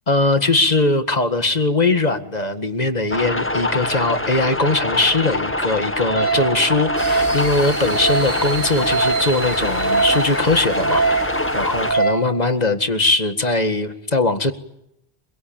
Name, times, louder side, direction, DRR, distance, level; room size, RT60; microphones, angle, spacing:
voice 1, 0.1-14.5, left 2 dB, 40° left, 9 dB, 2.0 m, -20 dB
sound 1, 3.1-11.9, left 1 dB, 10° left, 1.3 m, -25 dB
Wind instrument woodwind instrument, 6.1-12.3, right 3 dB, 15° right, 6.6 m, -23 dB
sound 2, 7.0-12.0, right 3 dB, 60° right, 6.1 m, -32 dB
25.5 x 23.5 x 8.9 m, 0.78 s
omnidirectional pair, 1.1 m